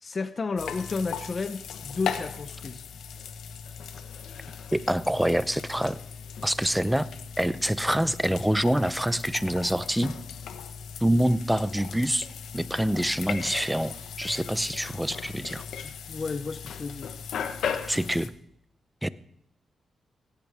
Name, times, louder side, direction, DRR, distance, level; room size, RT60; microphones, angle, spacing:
voice 1, 0.0-2.8 15.8-17.1, left 4 dB, 40° left, 12 dB, 0.8 m, -32 dB
sound 1, 0.6-18.3, left 7 dB, 85° left, 1.3 m, -38 dB
voice 2, 4.7-6.0 6.4-7.1 7.4-10.1 11.0-12.3 12.5-15.6 17.8-18.3 19.0-19.1, right 1 dB, 5° right, 15 dB, 0.7 m, -26 dB
18.0 x 16.5 x 3.6 m, 0.71 s
cardioid pair, 80°, 0 cm